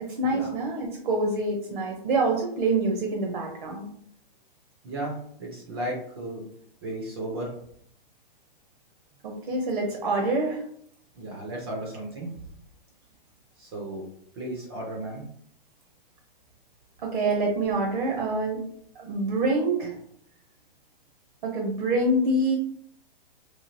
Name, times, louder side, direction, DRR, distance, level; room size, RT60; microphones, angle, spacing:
voice 1, 0.2-3.9 9.2-10.6 17.0-18.6 19.0-19.9 21.4-22.6, right 2 dB, 55° right, 1 dB, 0.8 m, -26 dB
voice 2, 4.8-6.4 6.8-7.5 11.2-12.3 13.6-14.0 14.4-15.2, right 1 dB, 25° right, -1 dB, 0.5 m, -34 dB
3.1 x 2.4 x 2.6 m, 0.67 s
hypercardioid pair, 170°, 29 cm